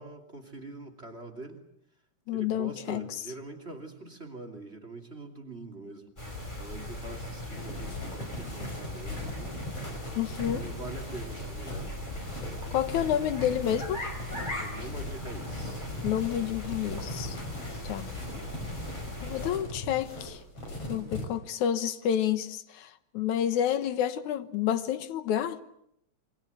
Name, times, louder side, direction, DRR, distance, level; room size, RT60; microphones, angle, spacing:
voice 1, 0.0-1.6 2.3-6.1 6.6-9.6 10.5-11.9 14.6-15.9 17.5-17.9 20.9-21.3, right 2 dB, 20° right, 2.7 m, -44 dB
voice 2, 2.3-3.1 10.2-10.6 12.7-14.0 16.0-17.4 17.8-18.1 19.2-20.4 20.9-25.6, left 10 dB, 80° left, 2.6 m, -29 dB
sound 1, 6.2-19.5, left 1 dB, 15° left, 5.0 m, -39 dB
sound 2, 7.6-21.3, left 1 dB, 50° left, 7.0 m, -40 dB
27.0 x 24.0 x 8.0 m
omnidirectional pair, 3.4 m